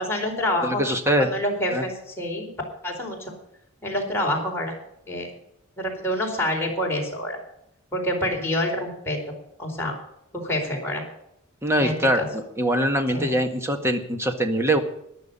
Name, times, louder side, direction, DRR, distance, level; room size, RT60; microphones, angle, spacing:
voice 1, 0.0-2.5 2.8-3.3 3.8-4.8 5.1-5.3 5.8-7.4 7.9-10.0 10.4-11.0 11.8-12.3 13.1-13.3, left 1 dB, 10° left, -1 dB, 4.4 m, -27 dB
voice 2, 0.6-1.3 1.7-1.8 11.6-14.8, right 1 dB, 10° right, 5 dB, 1.7 m, -23 dB
14.5 x 11.0 x 5.4 m, 0.78 s
head